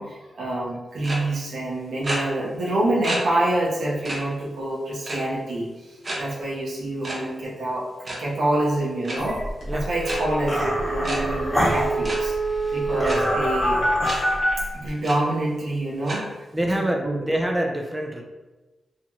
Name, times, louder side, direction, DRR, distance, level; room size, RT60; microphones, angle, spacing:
voice 1, 0.0-7.9 8.2-9.4 9.7-12.4 12.7-13.8 14.7-16.3 16.7-17.2, right 1 dB, 80° right, -5 dB, 0.8 m, -26 dB
sound 1, 1.0-1.2 2.0-2.2 3.0-3.2 3.6-3.7 4.0-4.2 5.0-5.4 6.0-6.2 7.0-7.2 7.9-8.2 9.0-9.2 10.0-10.2 11.0-11.2 12.0-12.2 13.0-13.2 14.0-14.2 14.6-14.7 15.0-15.1 16.0-16.2, right 1 dB, 45° right, 0.8 m, -29 dB
sound 2, 9.1-14.9, equal, 15° left, 1.0 m, -28 dB
sound 3, 9.3-9.4 9.6-9.7 9.9-14.5, right 2 dB, 75° left, 0.9 m, -26 dB
voice 2, 12.9-13.4 16.5-18.2, right 1 dB, 15° right, 2 dB, 0.4 m, -26 dB
2.7 x 2.2 x 2.9 m, 1.1 s
cardioid pair, 55°, 0 cm